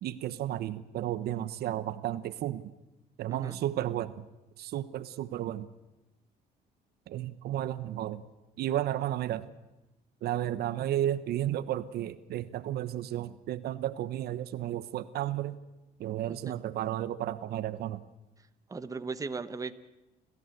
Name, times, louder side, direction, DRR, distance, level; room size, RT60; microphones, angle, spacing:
voice 1, 0.0-2.6 3.2-4.2 4.6-5.7 7.1-8.2 8.6-9.5 10.2-15.6 16.0-18.0, right 12 dB, 70° right, 14 dB, 1.0 m, -33 dB
voice 2, 3.3-3.6 16.3-16.5 18.7-19.7, right 4 dB, 20° right, 11 dB, 1.2 m, -37 dB
29.0 x 14.5 x 8.0 m, 1.0 s
cardioid pair, 110°, 17 cm